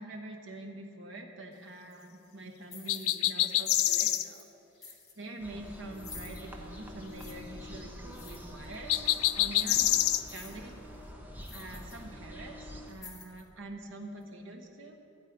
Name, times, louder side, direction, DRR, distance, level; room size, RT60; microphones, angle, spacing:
voice 1, 0.0-4.5 4.8-8.9 9.3-9.9 10.3-10.7 11.5-15.0, right 2 dB, 60° right, 2 dB, 1.2 m, -45 dB
sound 1, 1.9-2.1 2.6-3.2 3.4-4.5 4.8-5.1 5.9-6.5 7.1-7.3 8.1-8.8 9.1-9.2 10.1-10.6 11.0-11.1 11.4-12.0 12.3-12.4 12.9-13.5, left 4 dB, 15° left, 1.2 m, -50 dB
sound 2, 2.9-4.3 8.9-10.2, left 13 dB, 90° left, 0.4 m, -26 dB
sound 3, 5.4-12.9, equal, 10° right, 0.8 m, -46 dB
12.5 x 8.4 x 5.3 m, 2.7 s
head